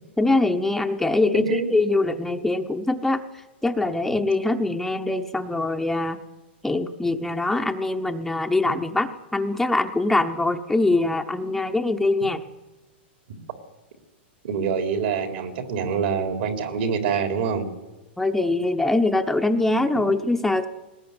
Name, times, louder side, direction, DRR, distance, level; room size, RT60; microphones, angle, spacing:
voice 1, 0.2-3.2 3.6-6.2 6.6-12.4 18.2-20.7, left 2 dB, 5° left, 5 dB, 0.8 m, -23 dB
voice 2, 1.3-1.7 14.4-17.7, right 6 dB, 65° right, 6 dB, 3.6 m, -25 dB
21.0 x 19.5 x 9.7 m, 1.1 s
hypercardioid pair, 145°, 6 cm